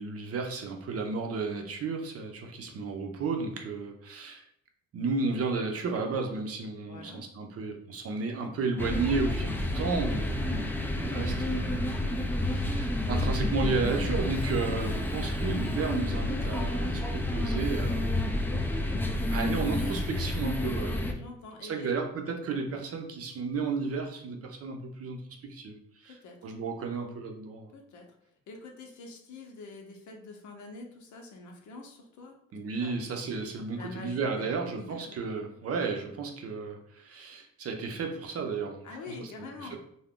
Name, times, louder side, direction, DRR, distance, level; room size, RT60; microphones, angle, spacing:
voice 1, 0.0-4.4 4.9-11.9 12.5-18.1 19.3-21.0 21.6-26.1 26.4-27.7 32.5-38.9 39.6-39.8, right 4 dB, 50° right, 3 dB, 0.6 m, -33 dB
voice 2, 6.9-7.2 14.5-15.0 21.1-21.9 26.1-26.5 27.7-28.1 28.5-32.3 32.8-33.0 33.7-35.5 38.8-39.8, left 3 dB, 70° left, 2 dB, 0.8 m, -45 dB
sound 1, 8.8-21.1, left 1 dB, 5° left, 0.4 m, -30 dB
2.5 x 2.2 x 3.5 m, 0.72 s
cardioid pair, 90°, 30 cm